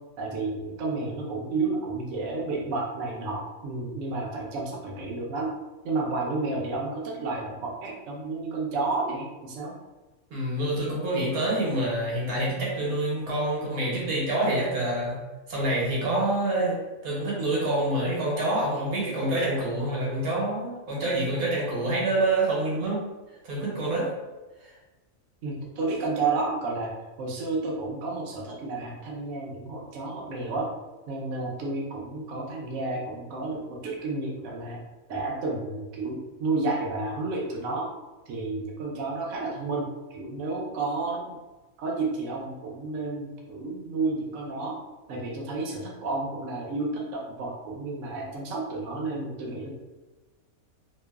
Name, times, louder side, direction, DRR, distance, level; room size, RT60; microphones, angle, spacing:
voice 1, 0.2-5.5 5.8-9.8 25.4-26.9 27.2-30.7 31.1-34.8 35.1-37.9 38.3-41.4 41.8-44.8 45.1-49.7, right 3 dB, 70° right, -2 dB, 0.9 m, -31 dB
voice 2, 10.3-15.2 15.5-23.0 23.4-24.1, right 1 dB, 90° right, -5 dB, 1.3 m, -27 dB
3.0 x 2.0 x 2.2 m, 1.2 s
omnidirectional pair, 1.5 m